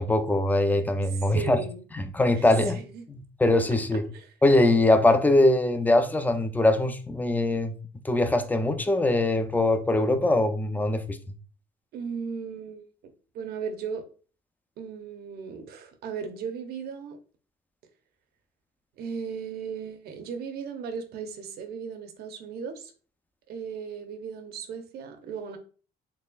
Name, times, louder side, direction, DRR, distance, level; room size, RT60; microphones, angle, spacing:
voice 1, 0.0-1.6 1.9-2.8 3.1-4.0 4.4-7.8 8.0-11.2, left 2 dB, 10° left, 0.4 m, -22 dB
voice 2, 1.3-1.8 2.3-3.1 3.9-4.3 11.9-14.0 14.8-17.2 19.0-22.9 23.5-25.6, right 6 dB, 70° right, 0.7 m, -36 dB
4.1 x 3.2 x 2.3 m
cardioid pair, 110°, 17 cm